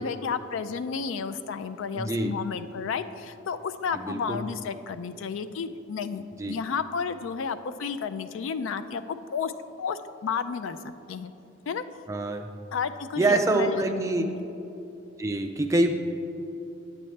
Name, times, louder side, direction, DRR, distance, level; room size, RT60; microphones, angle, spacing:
voice 1, 0.0-9.5 9.8-11.3 11.7-11.8 12.7-14.4, left 6 dB, 70° left, 11 dB, 0.3 m, -32 dB
voice 2, 1.9-2.3 3.9-4.4 6.4-6.6 12.1-12.5 13.2-14.3 15.2-15.9, right 2 dB, 15° right, 5 dB, 0.4 m, -25 dB
9.0 x 8.5 x 3.2 m, 2.9 s
head